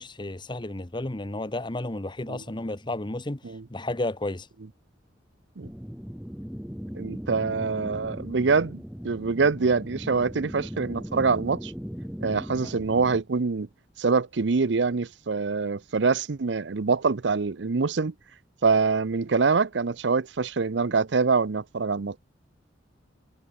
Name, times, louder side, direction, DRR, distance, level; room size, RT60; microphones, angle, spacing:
voice 1, 0.0-3.4 3.7-4.5 12.6-12.8, left 2 dB, 25° left, 1.2 m, -32 dB
sound 1, 5.6-13.2, equal, 5° right, 0.8 m, -38 dB
voice 2, 6.9-11.7 12.2-13.7 14.0-18.1 18.6-22.2, right 4 dB, 70° right, 0.7 m, -25 dB
head